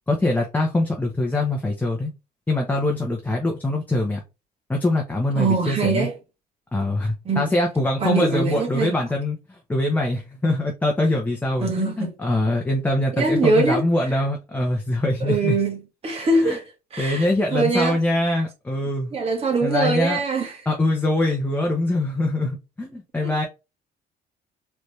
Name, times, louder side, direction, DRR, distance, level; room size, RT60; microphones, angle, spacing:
voice 1, 0.1-2.1 2.5-4.2 4.7-6.1 6.7-9.4 9.7-15.6 16.4-16.6 17.0-19.2 19.6-20.2 20.7-23.4, left 2 dB, 10° left, 0.9 m, -23 dB
voice 2, 5.4-6.1 7.3-7.5 8.0-8.9 11.6-12.2 13.1-13.8 15.2-17.3 17.5-18.0 18.3-18.4 19.1-20.6 23.2-23.3, right 3 dB, 35° right, 1.8 m, -23 dB
4.0 x 3.4 x 3.1 m
cardioid pair, 110°, 17 cm